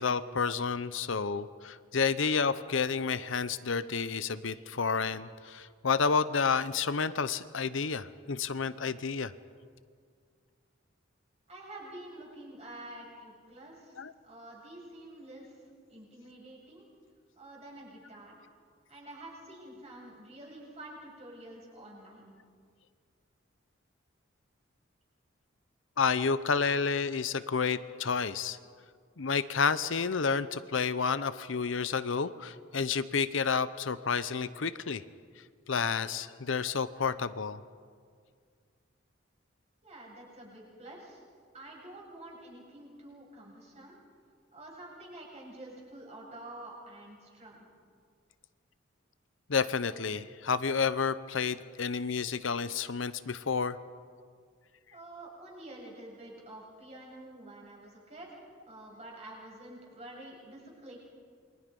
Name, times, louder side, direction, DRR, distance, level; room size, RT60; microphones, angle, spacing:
voice 1, 0.0-9.3 14.0-14.1 26.0-28.6 29.2-35.0 35.7-37.6 49.5-53.8, left 5 dB, 70° left, 14 dB, 0.8 m, -30 dB
voice 2, 11.5-14.0 14.2-15.6 15.9-16.9 17.4-18.4 18.9-22.3 39.8-41.2 41.5-44.0 44.5-47.6 54.9-61.0, right 1 dB, 35° right, -3 dB, 7.9 m, -48 dB
28.5 x 23.0 x 5.4 m, 2.1 s
head